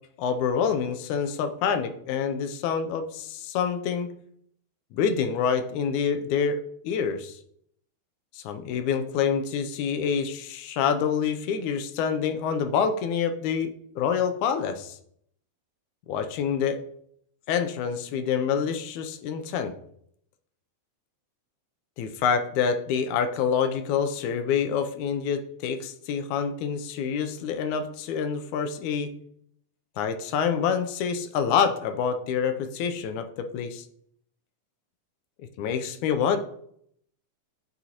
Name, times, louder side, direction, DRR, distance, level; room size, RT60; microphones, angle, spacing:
voice 1, 0.2-4.1 4.9-6.6 6.8-7.4 8.3-15.0 16.1-16.8 17.5-19.7 22.0-29.2 30.0-33.9 35.6-36.4, left 7 dB, 90° left, 8 dB, 2.1 m, -27 dB
9.4 x 4.0 x 2.9 m, 0.69 s
omnidirectional pair, 3.3 m